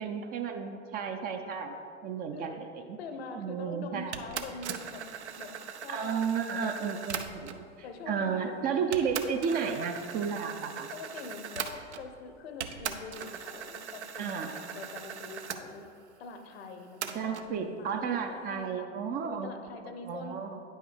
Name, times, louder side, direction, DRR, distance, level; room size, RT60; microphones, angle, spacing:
voice 1, 0.0-1.8 2.0-3.0 3.4-4.1 5.9-7.6 8.1-10.9 14.2-14.6 17.1-19.5 20.0-20.6, right 6 dB, 25° right, 5 dB, 0.5 m, -33 dB
voice 2, 3.0-5.0 5.3-5.5 5.8-6.8 7.8-8.4 9.3-9.6 10.9-15.8 16.2-18.9 19.2-20.4, left 4 dB, 60° left, 7 dB, 0.9 m, -44 dB
sound 1, 4.1-7.7 8.4-8.5 8.9-12.2 12.6-15.6 17.0-17.5, right 8 dB, 70° right, 0.7 m, -40 dB
9.5 x 5.5 x 4.7 m, 2.4 s
figure-of-eight pair, 85°, 36 cm